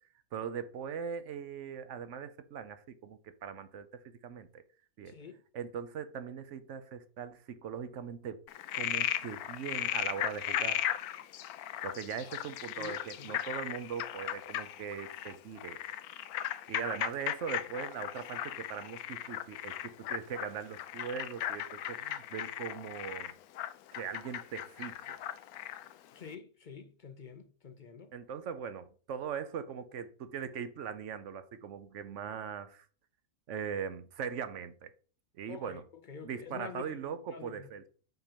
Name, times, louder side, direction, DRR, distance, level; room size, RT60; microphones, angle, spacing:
voice 1, 0.3-4.6 5.0-5.1 5.5-8.4 8.7-10.8 11.8-15.8 16.7-23.3 23.9-25.2 28.1-32.9 33.5-34.9 35.4-35.8 36.2-37.9, right 7 dB, 60° right, 1.0 m, -40 dB
voice 2, 5.1-5.4 12.8-13.4 26.1-28.1 35.5-35.8 36.1-36.9 37.3-37.7, left 6 dB, 55° left, 0.5 m, -47 dB
Frog, 8.5-25.9, left 12 dB, 80° left, 1.1 m, -37 dB
5.9 x 5.6 x 5.1 m
omnidirectional pair, 1.6 m